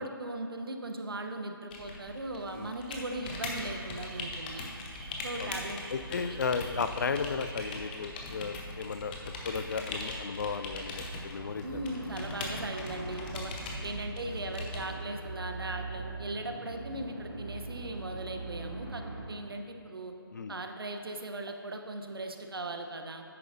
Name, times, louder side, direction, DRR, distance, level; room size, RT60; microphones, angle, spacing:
voice 1, 0.0-4.6 5.2-5.8 6.2-6.4 11.6-13.5 13.8-20.1 20.5-23.2, right 2 dB, 70° right, 5 dB, 0.9 m, -38 dB
sound 1, 1.7-14.8, left 2 dB, 25° left, 0.8 m, -41 dB
sound 2, 2.8-7.8, right 4 dB, 30° right, 1.2 m, -53 dB
voice 2, 5.9-9.1 9.4-11.8 20.3-20.5, left 5 dB, 50° left, 10 dB, 0.4 m, -34 dB
sound 3, 11.4-19.2, right 2 dB, 90° right, 1.4 m, -41 dB
10.0 x 8.9 x 2.7 m, 2.5 s
figure-of-eight pair, 145°, 13 cm